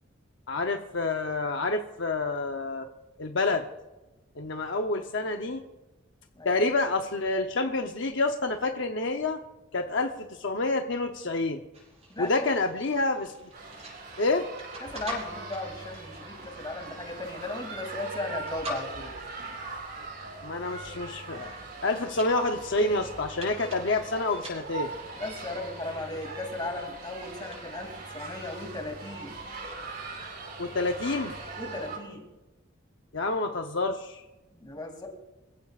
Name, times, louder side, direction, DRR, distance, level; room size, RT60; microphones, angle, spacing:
voice 1, 0.5-2.9 3.2-3.7 4.4-5.6 6.4-9.4 9.7-11.6 12.2-13.3 14.2-14.5 20.4-21.5 21.8-24.9 30.6-31.3 33.1-34.2, left 2 dB, 65° left, 5 dB, 0.8 m, -28 dB
sound 1, 11.7-30.1, equal, 30° right, 6.4 m, -46 dB
voice 2, 12.1-12.5 14.8-19.2 25.2-29.4 31.5-32.2 34.5-35.1, left 2 dB, 20° left, 2 dB, 2.8 m, -37 dB
sound 2, 13.5-32.0, right 3 dB, 50° right, 4.2 m, -41 dB
25.0 x 15.5 x 2.5 m, 1.0 s
head